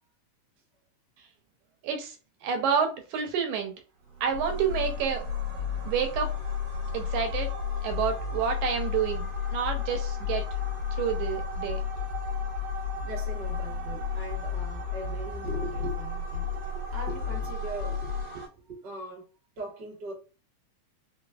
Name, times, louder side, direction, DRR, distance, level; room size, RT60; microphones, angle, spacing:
voice 1, 1.8-2.2 2.4-3.7 4.2-5.2 5.8-6.3 6.9-7.5 7.8-10.4 11.0-11.8, right 7 dB, 90° right, 2.1 m, -29 dB
sound 1, 4.0-18.5, right 5 dB, 70° right, 2.0 m, -42 dB
sound 2, 4.3-18.2, left 8 dB, 75° left, 1.5 m, -33 dB
voice 2, 12.9-19.3 19.6-20.1, right 3 dB, 45° right, 1.5 m, -40 dB
5.0 x 2.0 x 2.2 m
omnidirectional pair, 3.4 m